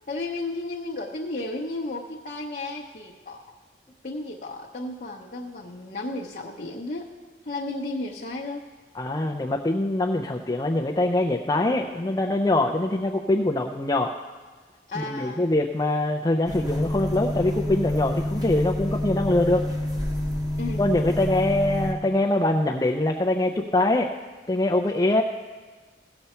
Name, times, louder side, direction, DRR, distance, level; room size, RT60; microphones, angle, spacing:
voice 1, 0.1-3.5 4.0-7.1 7.4-8.6 14.9-15.4 20.6-20.9 24.9-25.1, left 2 dB, 45° left, -2 dB, 0.8 m, -33 dB
voice 2, 8.9-14.1 15.0-19.6 20.8-24.1 24.5-25.2, left 2 dB, 20° left, 1 dB, 0.4 m, -23 dB
sound 1, 16.5-21.9, left 1 dB, 20° right, 1.1 m, -28 dB
16.0 x 6.9 x 4.3 m, 1.5 s
head